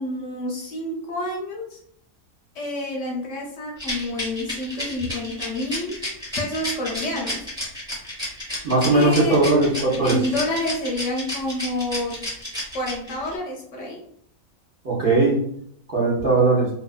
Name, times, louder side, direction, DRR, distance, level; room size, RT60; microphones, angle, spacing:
voice 1, 0.0-1.8 2.5-6.1 6.4-7.5 8.9-9.7 10.0-12.2 12.7-14.0, left 1 dB, 65° left, -1 dB, 0.9 m, -28 dB
Rattle, 3.8-13.3, left 1 dB, 5° right, 0.8 m, -31 dB
voice 2, 8.6-10.2 14.8-15.4 15.9-16.7, right 3 dB, 50° right, -6 dB, 0.7 m, -19 dB
2.7 x 2.2 x 2.3 m, 0.67 s
omnidirectional pair, 1.5 m